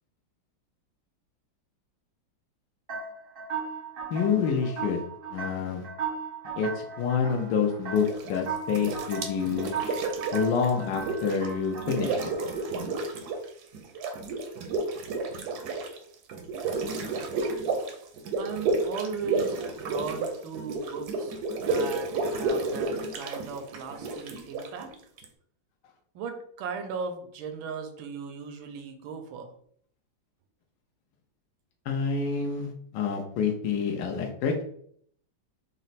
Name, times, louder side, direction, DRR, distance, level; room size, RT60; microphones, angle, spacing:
sound 1, 2.9-12.8, right 5 dB, 45° right, 0.7 m, -37 dB
voice 1, 4.1-5.0 5.3-5.8 6.6-9.7 10.3-12.3 31.9-34.5, left 6 dB, 75° left, 2 dB, 1.1 m, -27 dB
sound 2, 7.9-8.4 8.7-11.5 11.7-13.5 13.7-25.2, right 3 dB, 70° right, 1.0 m, -31 dB
voice 2, 18.4-24.9 26.1-29.5, right 5 dB, 85° right, 6 dB, 1.4 m, -37 dB
4.1 x 2.0 x 4.0 m, 0.63 s
omnidirectional pair, 2.1 m